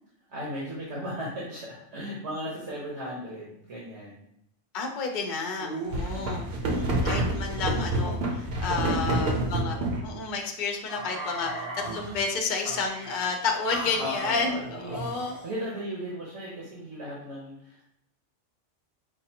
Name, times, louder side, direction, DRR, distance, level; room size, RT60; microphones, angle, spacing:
voice 1, 0.3-4.3 6.1-6.8 8.7-9.9 14.0-17.8, equal, 75° right, -5 dB, 1.3 m, -37 dB
voice 2, 4.7-9.8 10.0-15.4, left 4 dB, 50° left, 3 dB, 0.7 m, -31 dB
sound 1, 5.6-10.1 10.9-12.2 12.6-13.2 13.7-15.5, right 1 dB, 60° right, 0.9 m, -30 dB
5.6 x 2.5 x 2.8 m, 0.75 s
omnidirectional pair, 1.2 m